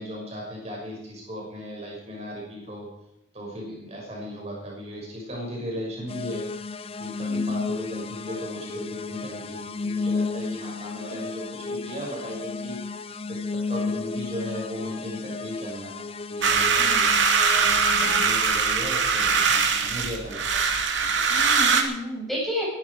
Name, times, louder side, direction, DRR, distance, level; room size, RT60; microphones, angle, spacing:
voice 1, 0.0-2.9 3.3-6.4 7.0-17.1 17.5-20.6, equal, 35° right, -2 dB, 6.3 m, -36 dB
voice 2, 3.6-4.0 16.8-17.2 17.9-18.4 21.3-22.7, left 1 dB, ahead, -4 dB, 6.6 m, -33 dB
sound 1, 6.1-18.4, left 4 dB, 30° left, 0.5 m, -33 dB
sound 2, 16.4-21.8, right 5 dB, 75° right, 2.5 m, -22 dB
21.0 x 12.5 x 4.8 m, 0.80 s
head